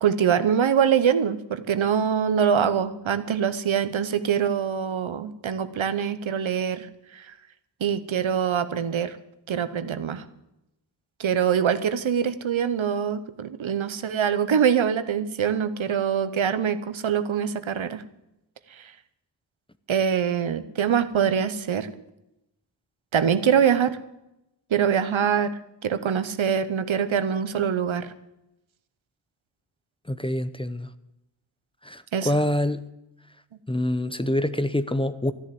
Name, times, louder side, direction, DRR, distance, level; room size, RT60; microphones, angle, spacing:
voice 1, 0.0-6.9 7.1-7.3 7.8-9.2 9.5-10.2 11.2-18.0 18.8-18.9 19.9-21.9 23.1-24.0 24.7-28.1 32.1-32.3, right 8 dB, 85° right, 12 dB, 1.0 m, -24 dB
voice 2, 30.1-30.9 31.8-32.9 33.7-35.3, left 1 dB, 10° left, 13 dB, 0.7 m, -26 dB
13.0 x 10.5 x 7.7 m, 0.88 s
wide cardioid pair, 95°, 46 cm